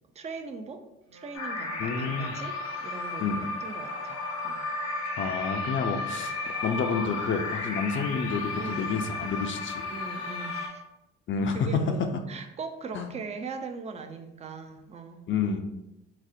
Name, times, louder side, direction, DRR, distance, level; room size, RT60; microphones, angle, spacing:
voice 1, 0.1-0.8 1.1-4.6 5.8-6.3 8.6-9.5 9.9-10.8 11.5-15.2, right 4 dB, 25° right, 7 dB, 0.4 m, -40 dB
Wind instrument woodwind instrument, 1.0-10.6, left 2 dB, 50° right, 0.8 m, -52 dB
sound 1, 1.3-10.7, left 3 dB, 65° left, 0.8 m, -34 dB
voice 2, 1.8-2.4 3.2-3.4 5.2-9.9 11.3-11.8 12.9-13.1 15.3-15.6, left 5 dB, 40° left, 5 dB, 0.5 m, -29 dB
4.0 x 2.0 x 2.6 m, 0.92 s
hypercardioid pair, 55°, 30 cm